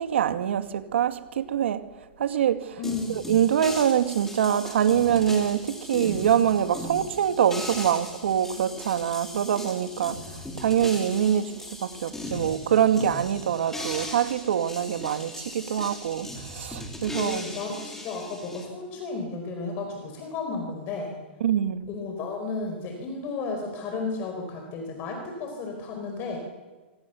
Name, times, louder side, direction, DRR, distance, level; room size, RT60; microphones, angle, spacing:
voice 1, 0.0-1.8 2.2-2.8 3.1-10.2 10.6-17.4 21.4-21.8, right 9 dB, 80° right, 2.1 m, -24 dB
voice 2, 2.8-3.2 17.1-21.2 21.9-26.4, left 3 dB, 30° left, 4.7 m, -33 dB
sound 1, 2.8-18.7, left 1 dB, 5° left, 3.9 m, -38 dB
26.5 x 24.5 x 7.1 m
hypercardioid pair, 160°, 6 cm